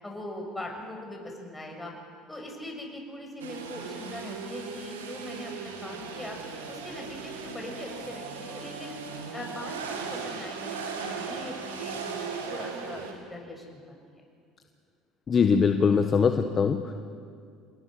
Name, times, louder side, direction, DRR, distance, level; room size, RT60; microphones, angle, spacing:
voice 1, 0.0-1.9 2.3-5.5 5.8-6.4 6.7-9.0 9.3-14.2, left 1 dB, 15° left, 1 dB, 7.0 m, -41 dB
sound 1, 3.4-13.1, right 5 dB, 85° right, 2.7 m, -37 dB
voice 2, 15.3-16.9, left 6 dB, 40° left, 7 dB, 1.3 m, -22 dB
28.0 x 20.0 x 6.6 m, 2.3 s
hypercardioid pair, 70°, 0 cm